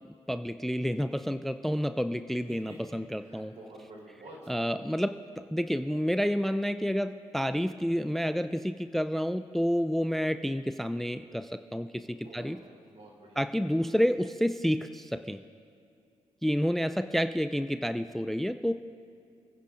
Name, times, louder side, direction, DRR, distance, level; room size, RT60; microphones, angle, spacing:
voice 1, 0.3-3.5 4.5-5.2 5.5-12.6 13.4-15.4 16.4-18.7, equal, ahead, 10 dB, 0.4 m, -29 dB
voice 2, 2.5-4.6 12.1-13.5, right 1 dB, 60° right, -3 dB, 3.5 m, -50 dB
28.0 x 10.0 x 2.5 m, 2.4 s
supercardioid pair, 50°, 12 cm